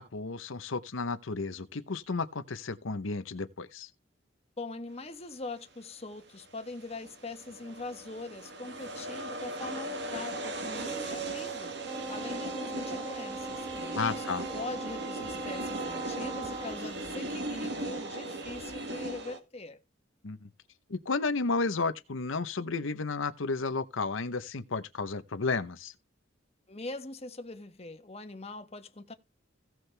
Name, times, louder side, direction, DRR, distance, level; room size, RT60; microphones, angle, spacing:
voice 1, 0.0-3.9 13.9-14.5 20.2-20.5 20.9-25.9, left 4 dB, 80° left, 0.8 m, -32 dB
voice 2, 4.6-11.7 12.1-14.2 14.5-19.8 26.7-29.1, left 2 dB, 30° left, 1.3 m, -42 dB
sound 1, 6.4-19.4, right 2 dB, 60° right, 1.8 m, -38 dB
Wind instrument woodwind instrument, 11.8-16.9, right 3 dB, 15° right, 1.5 m, -40 dB
16.5 x 6.3 x 3.3 m
head